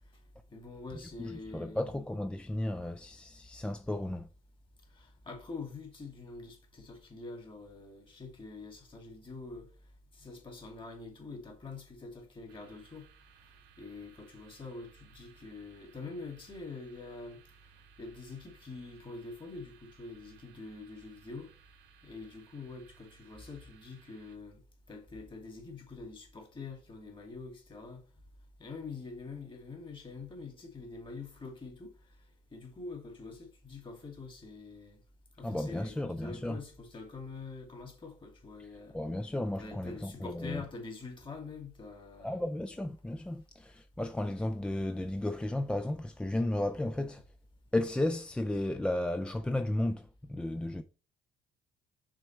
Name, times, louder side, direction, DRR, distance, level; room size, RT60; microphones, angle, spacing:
voice 1, 0.5-1.9 4.9-9.7 10.1-13.1 13.8-17.4 18.0-21.5 22.0-24.6 24.9-28.0 28.6-31.9 32.5-35.0 35.4-39.0 39.6-42.4, left 3 dB, 30° left, 2.3 m, -45 dB
voice 2, 1.2-4.3 35.4-36.6 38.9-40.6 42.2-47.2 47.7-50.8, left 1 dB, 5° left, 0.3 m, -34 dB
sound 1, 12.5-24.4, right 9 dB, 80° right, 1.0 m, -62 dB
6.3 x 3.6 x 4.4 m
cardioid pair, 110°, 17 cm